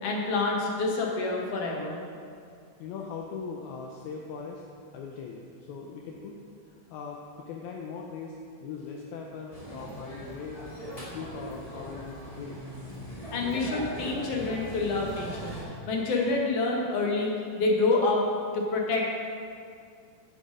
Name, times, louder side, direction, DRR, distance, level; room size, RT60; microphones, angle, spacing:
voice 1, 0.0-2.0 13.3-15.6 15.9-18.2 18.5-19.0, left 3 dB, 60° left, -1 dB, 2.0 m, -27 dB
voice 2, 2.8-4.6 4.9-6.4 6.7-8.4 8.6-10.6 10.9-12.7, left 5 dB, 75° left, 0 dB, 1.9 m, -40 dB
sound 1, 9.5-15.6, right 1 dB, 25° left, 0.7 m, -40 dB
8.2 x 7.7 x 5.0 m, 2.3 s
omnidirectional pair, 3.6 m